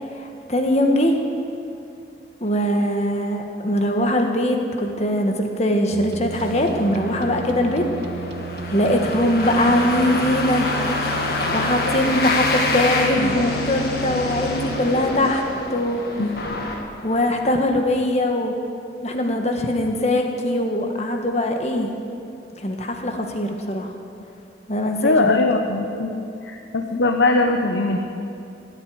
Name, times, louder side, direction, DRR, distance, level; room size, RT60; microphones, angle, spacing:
voice 1, 0.2-1.1 2.4-7.8 8.7-10.7 11.2-11.3 11.5-15.4 15.7-16.0 17.0-18.5 19.0-21.9 22.6-23.9 24.7-25.4, left 1 dB, 35° left, 3 dB, 1.5 m, -21 dB
sound 1, 5.9-14.8, right 1 dB, 65° right, 0.5 m, -33 dB
sound 2, 6.3-17.5, left 2 dB, 55° left, 1.9 m, -27 dB
voice 2, 25.0-28.0, left 2 dB, 85° left, 4 dB, 0.9 m, -21 dB
17.5 x 8.3 x 9.5 m, 2.6 s
head